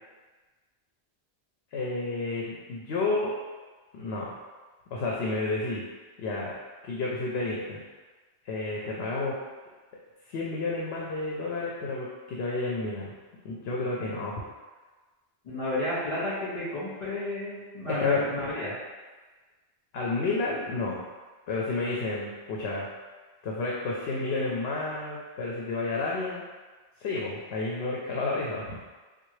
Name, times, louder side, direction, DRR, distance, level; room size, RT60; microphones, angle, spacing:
voice 1, 1.7-3.3 3.9-4.3 4.9-5.8 6.2-6.6 6.8-7.8 8.4-9.4 10.3-13.1 13.4-14.4 17.9-18.2 19.9-21.0 21.5-22.9 23.4-26.4 27.0-28.8, left 3 dB, 70° left, -4 dB, 0.8 m, -30 dB
voice 2, 15.4-18.7, left 1 dB, 40° left, -10 dB, 1.7 m, -31 dB
3.6 x 2.3 x 3.1 m, 1.3 s
omnidirectional pair, 1.1 m